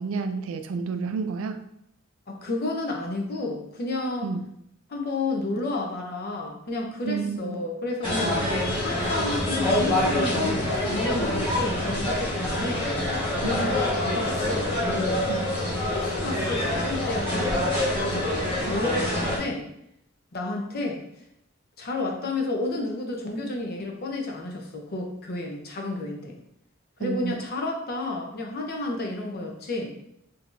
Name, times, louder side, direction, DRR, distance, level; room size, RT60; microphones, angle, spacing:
voice 1, 0.0-1.6 4.2-4.4 7.1-7.6 8.2-8.8 13.4-13.7 15.3-15.4 27.0-27.4, right 4 dB, 75° right, 8 dB, 0.3 m, -30 dB
voice 2, 2.3-4.3 4.9-8.3 8.8-13.1 13.4-15.2 15.8-18.3 18.7-19.6 20.3-21.0 21.8-26.4 27.0-29.9, left 2 dB, 50° left, 1 dB, 0.6 m, -31 dB
sound 1, 8.0-19.4, left 1 dB, 25° left, 1.2 m, -26 dB
3.7 x 2.8 x 2.4 m, 0.75 s
head